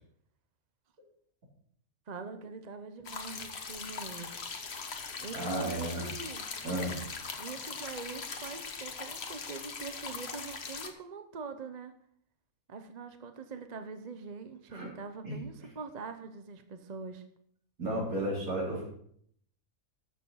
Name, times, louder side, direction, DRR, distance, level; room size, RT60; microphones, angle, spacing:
voice 1, 2.1-4.3 5.2-6.4 7.4-11.9 12.7-17.2, right 4 dB, 35° right, 8 dB, 0.8 m, -43 dB
sound 1, 3.0-10.9, left 5 dB, 50° left, 1.3 m, -40 dB
voice 2, 5.3-6.1 6.6-6.9 14.7-14.9 15.2-15.4 17.8-18.9, right 1 dB, 70° right, -3 dB, 4.4 m, -33 dB
13.0 x 6.9 x 5.7 m, 0.65 s
omnidirectional pair, 1.5 m